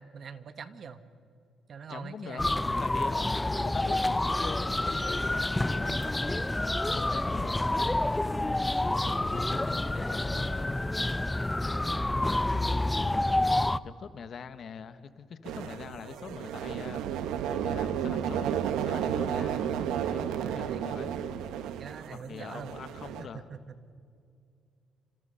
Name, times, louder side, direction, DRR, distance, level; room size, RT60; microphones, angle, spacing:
voice 1, 0.1-1.0 1.7-2.8 9.0-9.6 20.4-20.8 21.8-22.7 23.2-23.7, right 6 dB, 55° right, 11 dB, 1.6 m, -44 dB
voice 2, 1.9-6.5 6.9-7.9 8.3-8.6 8.9-10.8 13.8-18.6 18.9-19.7 20.1-21.1 22.1-23.5, left 6 dB, 55° left, 12 dB, 1.3 m, -43 dB
sound 1, 2.4-13.8, left 2 dB, 10° left, 0.6 m, -28 dB
sound 2, 15.5-23.2, right 9 dB, 90° right, 1.1 m, -32 dB
29.0 x 26.5 x 5.7 m, 2.4 s
cardioid pair, 90°, 0 cm